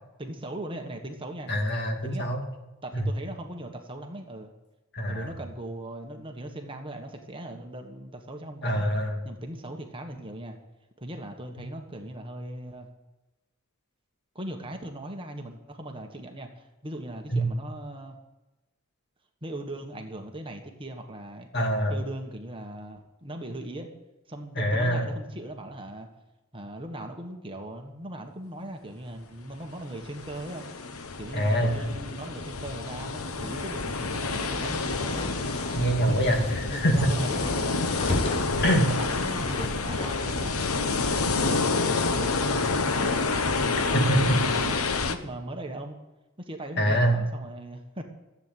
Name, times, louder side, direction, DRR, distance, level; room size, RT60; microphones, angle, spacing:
voice 1, 0.2-1.5 2.0-2.3 2.8-4.5 5.1-8.8 9.2-10.6 11.0-12.9 14.3-18.2 19.4-21.5 21.9-23.9 24.3-26.1 26.5-30.7 31.2-35.3 36.1-36.2 36.7-37.9 38.6-40.6 41.0-43.1 43.6-46.0 46.4-48.0, right 1 dB, 25° right, 4 dB, 1.4 m, -39 dB
voice 2, 1.5-2.4 2.9-3.1 4.9-5.3 8.6-9.2 17.3-17.4 21.5-22.0 24.6-25.1 31.3-31.8 35.7-37.1 38.6-38.9 43.9-44.4 46.8-47.2, equal, 50° left, 2 dB, 2.5 m, -24 dB
Water Miami beach Atlantic, 29.8-45.1, left 4 dB, 85° left, 1.1 m, -28 dB
sound 1, 33.2-45.0, left 1 dB, 25° left, 1.2 m, -37 dB
14.0 x 8.4 x 9.1 m, 1.1 s
head